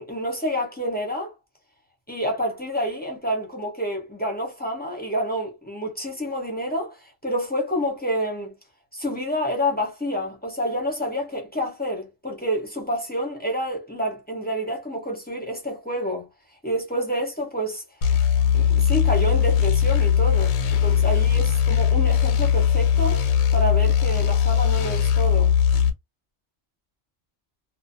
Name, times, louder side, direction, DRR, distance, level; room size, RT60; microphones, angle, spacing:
voice 1, 0.0-1.3 2.1-8.5 8.9-16.3 16.6-17.8 18.5-23.3 23.5-25.5, equal, 10° left, 0.4 m, -28 dB
sound 1, 18.0-25.9, left 8 dB, 90° left, 1.0 m, -20 dB
2.5 x 2.1 x 2.6 m
omnidirectional pair, 1.4 m